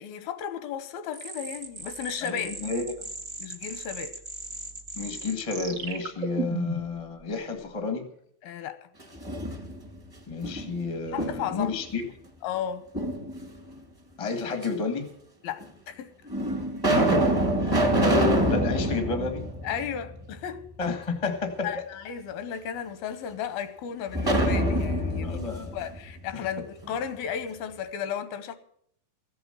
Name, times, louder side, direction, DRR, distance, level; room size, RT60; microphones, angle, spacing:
voice 1, 0.0-2.5 3.4-4.1 8.4-8.8 11.1-11.7 12.4-12.9 15.4-16.1 19.6-20.7 21.6-28.5, left 8 dB, 85° left, 2.8 m, -34 dB
sound 1, 1.1-7.0, right 4 dB, 60° right, 0.8 m, -36 dB
voice 2, 2.2-2.9 4.9-8.1 10.3-12.1 14.2-15.1 16.9-19.5 20.8-21.8 25.2-25.8 26.3-26.5, left 4 dB, 30° left, 0.6 m, -31 dB
sound 2, 9.0-10.0 10.4-11.7 12.9-13.7 14.6-14.7 15.6-15.7 16.3-20.4 20.7-20.8 24.1-26.9, right 1 dB, 15° right, 0.9 m, -26 dB
15.0 x 7.9 x 7.8 m
omnidirectional pair, 4.1 m